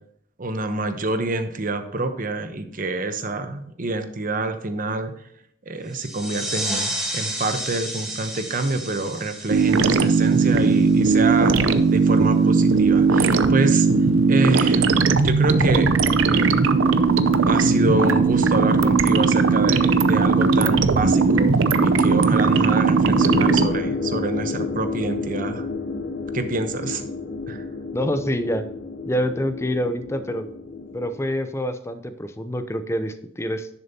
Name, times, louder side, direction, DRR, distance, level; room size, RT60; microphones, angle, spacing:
voice 1, 0.4-5.1 5.7-11.6 11.9-13.9 14.3-14.9 15.2-15.9 16.3-16.6 17.4-25.7 26.3-27.0 27.5-27.7, right 2 dB, 45° right, 8 dB, 0.9 m, -27 dB
sound 1, 5.9-11.2, right 1 dB, ahead, 1.7 m, -32 dB
sound 2, 9.5-23.7, right 4 dB, 90° right, 0.6 m, -18 dB
sound 3, 23.2-31.3, left 3 dB, 55° left, 0.7 m, -30 dB
voice 2, 27.9-28.7 29.1-30.5 30.9-33.7, equal, 15° left, 10 dB, 0.6 m, -26 dB
10.5 x 6.8 x 2.8 m, 0.72 s
head